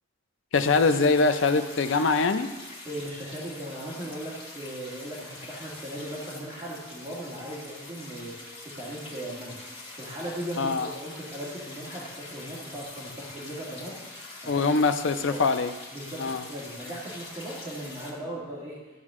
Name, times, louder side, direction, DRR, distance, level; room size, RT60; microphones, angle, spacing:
voice 1, 0.5-2.5 10.6-10.9 14.5-15.7 16.2-16.4, left 4 dB, 60° left, 9 dB, 0.5 m, -23 dB
sound 1, 0.5-18.1, left 2 dB, 25° left, 2.4 m, -44 dB
voice 2, 2.8-9.6 9.9-14.0 14.4-14.6 15.3-15.4 15.9-18.8, right 1 dB, 20° right, -9 dB, 2.1 m, -38 dB
13.5 x 7.5 x 3.7 m, 1.2 s
head